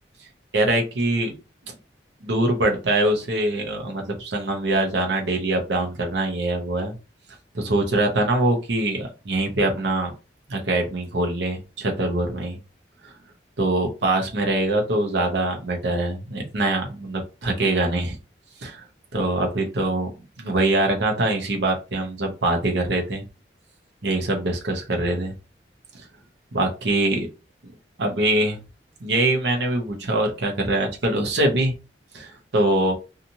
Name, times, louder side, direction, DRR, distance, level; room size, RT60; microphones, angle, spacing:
voice 1, 0.5-1.3 1.7-1.8 2.2-6.9 7.5-10.1 10.5-12.6 13.0-13.1 13.6-18.2 18.6-18.8 19.1-20.1 20.4-23.2 24.0-25.3 25.9-26.0 26.5-27.3 28.0-28.6 29.0-31.7 32.1-32.9, right 2 dB, 75° right, 2 dB, 0.8 m, -23 dB
2.8 x 2.4 x 2.7 m, 0.30 s
head